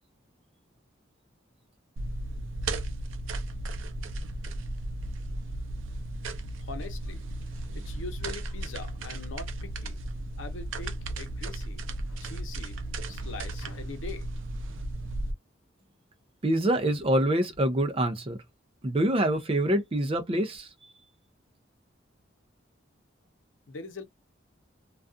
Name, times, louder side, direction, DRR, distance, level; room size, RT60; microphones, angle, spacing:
sound 1, 2.0-15.3, right 1 dB, 85° right, 0.5 m, -35 dB
voice 1, 6.6-7.2 7.7-10.0 10.4-12.8 13.1-14.3 23.7-24.0, left 3 dB, 85° left, 0.7 m, -42 dB
voice 2, 16.4-18.4 18.8-20.7, right 1 dB, 30° right, 0.4 m, -25 dB
2.3 x 2.3 x 2.4 m
head